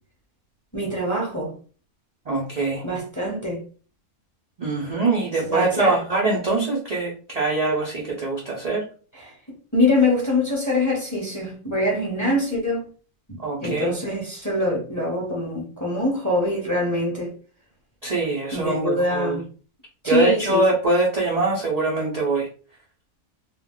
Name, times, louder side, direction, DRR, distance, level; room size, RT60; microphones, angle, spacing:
voice 1, 0.7-1.5 2.8-3.6 5.4-6.0 9.1-9.3 9.7-12.8 13.3-17.3 18.5-19.4 20.0-20.6, left 1 dB, 15° left, 0.8 m, -24 dB
voice 2, 2.3-2.9 4.6-8.9 13.4-14.0 18.0-19.4 20.1-22.5, right 3 dB, 50° right, 0.5 m, -23 dB
2.5 x 2.1 x 3.7 m
omnidirectional pair, 1.6 m